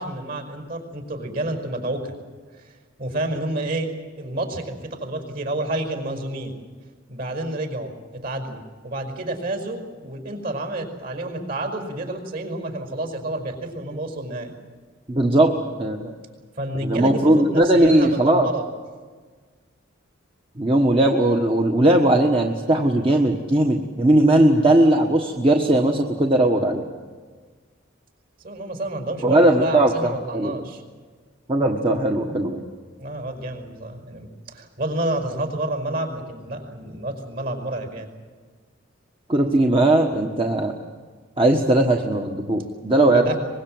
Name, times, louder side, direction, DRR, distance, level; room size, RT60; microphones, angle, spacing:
voice 1, 0.0-2.1 2.5-3.9 4.2-6.6 7.1-14.5 16.6-18.7 28.4-30.8 33.0-38.1 43.0-43.3, right 1 dB, 55° right, 5 dB, 5.3 m, -29 dB
voice 2, 15.1-16.1 16.8-18.5 20.6-26.9 29.2-30.6 31.5-32.6 39.3-40.7 41.4-43.2, right 1 dB, 30° right, 1 dB, 1.5 m, -18 dB
24.0 x 22.0 x 7.8 m, 1.5 s
head